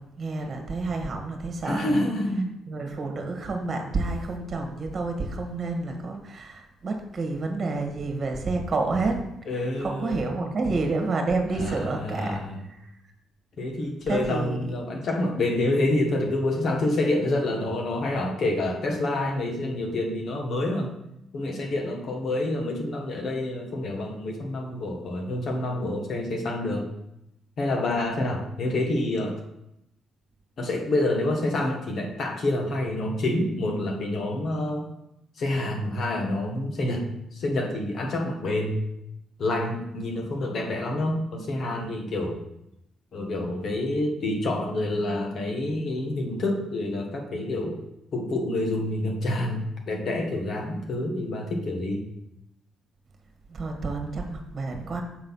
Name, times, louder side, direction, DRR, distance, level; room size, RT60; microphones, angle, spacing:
voice 1, 0.0-2.1 2.7-9.2 9.8-12.4 12.7-12.8 14.1-14.6 53.5-55.0, right 3 dB, 40° right, 3 dB, 1.5 m, -29 dB
voice 2, 1.6-2.5 9.5-10.3 11.5-12.5 13.6-20.9 21.3-26.9 27.6-29.4 30.6-34.9 35.4-38.8 39.4-42.4 43.1-47.8 48.1-52.0, left 1 dB, 60° left, 2 dB, 1.4 m, -27 dB
6.7 x 4.0 x 5.4 m, 0.83 s
cardioid pair, 90°, 0 cm